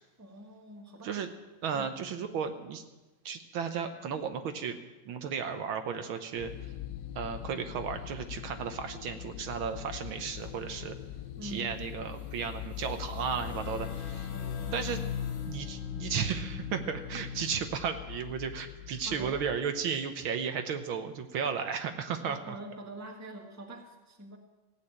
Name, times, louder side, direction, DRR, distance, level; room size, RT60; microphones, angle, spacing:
voice 1, 0.2-1.2 1.7-1.9 11.4-11.9 14.3-15.2 19.0-19.4 22.2-24.4, right 1 dB, 10° right, 3 dB, 1.3 m, -45 dB
voice 2, 1.6-2.8 3.2-4.8 5.1-6.5 7.1-11.0 11.4-14.3 14.7-15.0 15.5-22.4, right 6 dB, 70° right, 7 dB, 1.7 m, -34 dB
sound 1, 6.4-19.6, left 13 dB, 85° left, 0.8 m, -43 dB
sound 2, 10.1-10.8 11.4-11.5 11.7-17.7, left 7 dB, 65° left, 1.9 m, -40 dB
16.0 x 8.7 x 8.7 m, 1.1 s
omnidirectional pair, 2.4 m